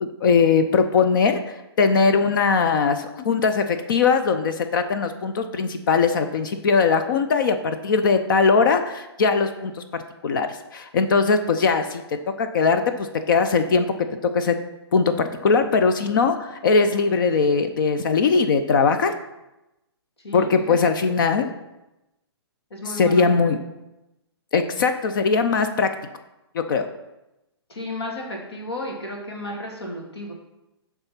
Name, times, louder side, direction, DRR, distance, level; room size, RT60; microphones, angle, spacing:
voice 1, 0.0-9.7 10.2-12.0 12.4-13.9 14.3-14.5 14.9-19.1 20.3-21.5 23.0-23.6 24.5-25.9 26.5-26.8, left 5 dB, 50° left, 8 dB, 0.6 m, -20 dB
voice 2, 20.2-21.1 22.7-23.3 27.7-30.3, left 1 dB, 70° left, 0 dB, 2.1 m, -33 dB
8.6 x 3.6 x 5.7 m, 0.96 s
figure-of-eight pair, 125°, 14 cm